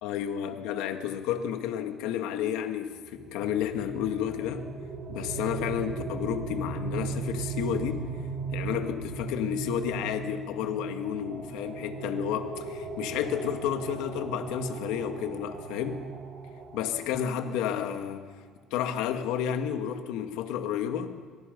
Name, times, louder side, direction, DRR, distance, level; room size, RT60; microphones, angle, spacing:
voice 1, 0.0-4.7 5.1-8.1 8.5-16.1 16.7-18.3 18.7-21.2, left 9 dB, 90° left, 1.9 m, -31 dB
sound 1, 3.0-17.8, right 5 dB, 70° right, 4.8 m, -37 dB
25.0 x 24.5 x 5.4 m
cardioid pair, 135°, 0 cm